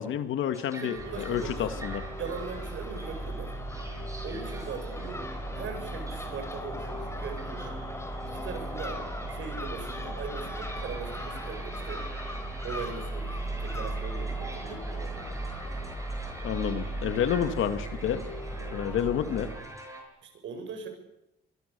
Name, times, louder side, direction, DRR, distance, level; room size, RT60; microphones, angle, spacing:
voice 1, 0.0-2.0 16.4-18.2 18.7-19.5, left 9 dB, 80° left, 10 dB, 2.2 m, -29 dB
sound 1, 0.5-20.0, right 1 dB, 15° right, 7.5 m, -46 dB
voice 2, 0.5-1.8 2.2-3.6 4.2-5.3 5.5-7.8 8.2-9.0 9.3-12.1 12.6-15.6 20.2-20.9, right 5 dB, 70° right, 6 dB, 7.6 m, -40 dB
Crow / Gull seagull, 1.0-19.6, right 1 dB, 15° left, 4.9 m, -36 dB
24.5 x 23.5 x 7.0 m, 0.88 s
cardioid pair, 90°, 20 cm